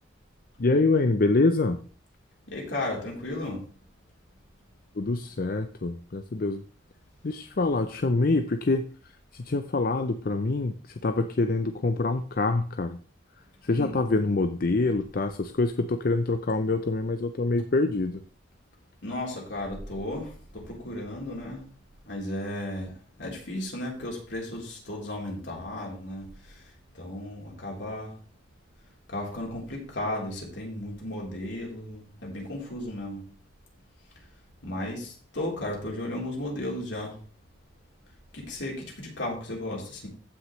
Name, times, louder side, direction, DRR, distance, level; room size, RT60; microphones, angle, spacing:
voice 1, 0.6-1.8 5.0-6.6 7.2-8.8 9.3-10.8 11.0-13.0 13.6-18.2, left 3 dB, 50° left, 8 dB, 0.6 m, -25 dB
voice 2, 2.5-3.6 13.7-13.9 19.0-21.6 22.1-22.9 23.2-26.3 26.9-28.1 29.1-33.2 34.6-37.1 38.3-40.1, left 1 dB, 75° left, -2 dB, 3.7 m, -34 dB
15.0 x 6.2 x 3.2 m, 0.42 s
head